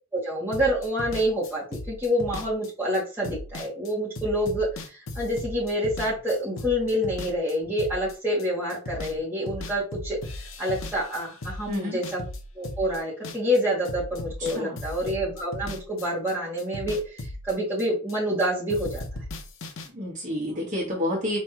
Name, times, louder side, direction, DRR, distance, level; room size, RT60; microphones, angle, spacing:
voice 1, 0.1-12.2 12.5-19.0, equal, 10° right, -7 dB, 1.8 m, -27 dB
sound 1, 0.5-9.2 9.5-13.6 13.8-18.4 18.7-19.9, left 1 dB, 70° left, 0.7 m, -37 dB
voice 2, 11.7-12.0 14.4-14.8 19.9-21.4, left 1 dB, 35° right, -4 dB, 1.5 m, -29 dB
5.3 x 3.3 x 2.9 m, 0.35 s
head